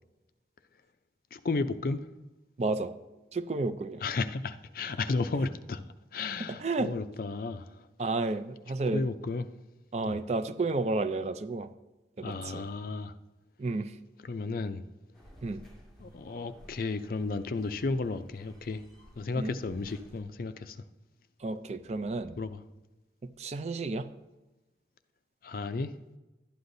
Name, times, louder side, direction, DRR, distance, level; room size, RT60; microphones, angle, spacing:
voice 1, 1.3-2.1 4.0-5.8 6.1-7.9 8.9-9.5 10.1-10.2 12.2-13.1 14.2-14.8 16.0-18.8 19.2-20.8 22.4-22.6 25.4-25.9, left 3 dB, 50° left, 11 dB, 0.4 m, -33 dB
voice 2, 2.6-2.9 3.3-4.0 6.5-6.9 8.0-9.0 9.9-11.7 12.2-12.7 13.6-14.0 15.4-15.6 19.4-19.6 21.4-22.4 23.4-24.1, right 3 dB, 35° right, 12 dB, 0.4 m, -31 dB
sound 1, 15.1-20.2, equal, ahead, 2.1 m, -55 dB
12.0 x 9.7 x 2.6 m, 1.1 s
head